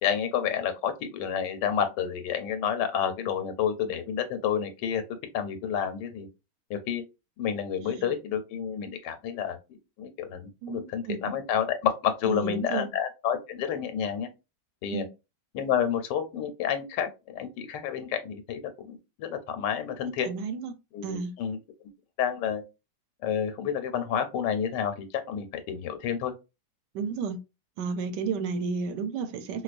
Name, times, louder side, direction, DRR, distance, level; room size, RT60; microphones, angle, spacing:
voice 1, 0.0-5.0 5.3-6.3 6.7-7.0 7.4-9.6 10.0-14.3 14.8-15.0 15.5-20.3 20.9-21.6 22.2-22.6 23.2-26.3, left 8 dB, 90° left, 1.3 m, -29 dB
voice 2, 10.6-11.4 12.2-12.9 14.9-15.1 20.2-20.7 21.0-21.3 26.9-27.4 27.8-29.6, right 5 dB, 85° right, 1.3 m, -32 dB
4.4 x 2.3 x 2.5 m
omnidirectional pair, 1.8 m